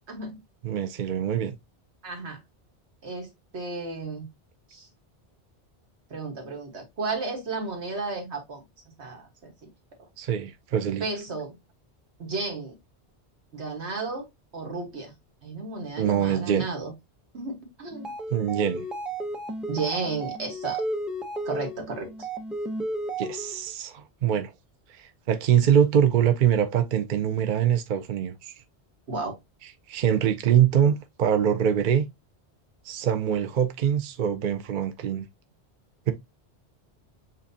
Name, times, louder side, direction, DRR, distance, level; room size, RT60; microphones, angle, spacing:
voice 1, 0.1-0.4 2.0-2.4 3.0-4.2 4.7-4.9 6.1-8.6 9.0-9.7 11.0-11.6 12.2-12.7 13.5-14.3 14.5-15.1 15.4-16.9 17.3-18.1 19.7-20.8 21.4-22.3 29.1-29.3, right 3 dB, 75° right, 1.7 m, -33 dB
voice 2, 0.6-1.5 10.2-11.0 16.0-16.7 18.3-18.8 23.2-24.5 25.0-28.6 29.9-32.1 32.9-35.3 36.1-36.2, right 9 dB, 55° right, 0.6 m, -24 dB
sound 1, 17.9-23.7, right 2 dB, ahead, 0.5 m, -33 dB
7.4 x 2.6 x 2.7 m
omnidirectional pair, 1.1 m